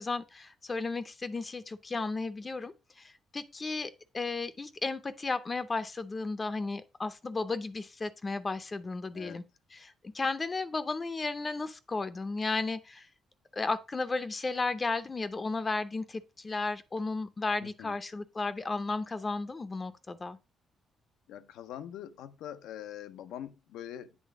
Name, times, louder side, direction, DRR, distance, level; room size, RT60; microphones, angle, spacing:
voice 1, 0.0-9.4 9.7-13.1 13.5-20.4, left 3 dB, 30° left, 0.6 m, -34 dB
voice 2, 17.6-18.0 21.3-24.2, left 10 dB, 85° left, 0.6 m, -43 dB
8.4 x 3.3 x 4.8 m
cardioid pair, 90°, 0 cm